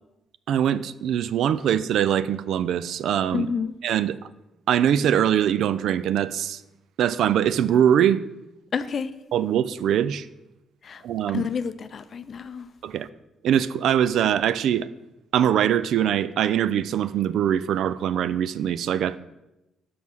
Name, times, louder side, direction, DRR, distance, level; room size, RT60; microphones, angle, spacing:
voice 1, 0.5-3.5 3.8-4.2 4.7-6.6 7.0-8.2 9.3-10.3 11.0-11.5 12.8-13.1 13.4-14.9 15.3-19.2, right 9 dB, 75° right, 0.3 m, -22 dB
voice 2, 3.3-3.7 8.7-9.1 10.8-11.0 11.3-12.7, left 6 dB, 50° left, 0.5 m, -29 dB
6.1 x 5.5 x 6.1 m
cardioid pair, 90°, 0 cm